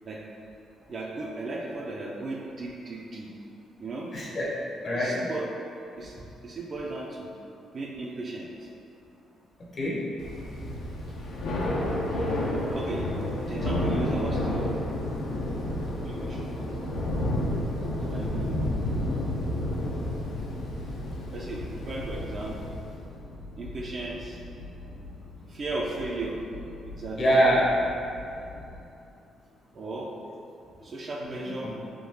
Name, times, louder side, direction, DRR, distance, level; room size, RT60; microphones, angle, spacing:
voice 1, 0.9-3.3 3.8-4.1 4.9-5.5 6.0-6.2 6.4-7.3 7.7-8.7 11.9-13.1 13.4-14.7 15.8-17.0 18.0-18.6 21.3-22.6 23.6-24.4 25.5-26.4 26.8-27.2 29.7-30.1 30.8-31.7, right 2 dB, 45° right, -3 dB, 0.4 m, -36 dB
voice 2, 4.1-4.5 4.8-5.1 9.6-10.1 27.2-27.8 31.2-31.8, equal, 50° left, -5 dB, 0.8 m, -25 dB
Thunder / Rain, 10.2-23.1, left 1 dB, 75° left, 0.5 m, -30 dB
sound 1, 18.6-28.8, left 2 dB, 90° right, 0.8 m, -44 dB
3.6 x 2.7 x 2.7 m, 2.7 s
cardioid pair, 90°, 0 cm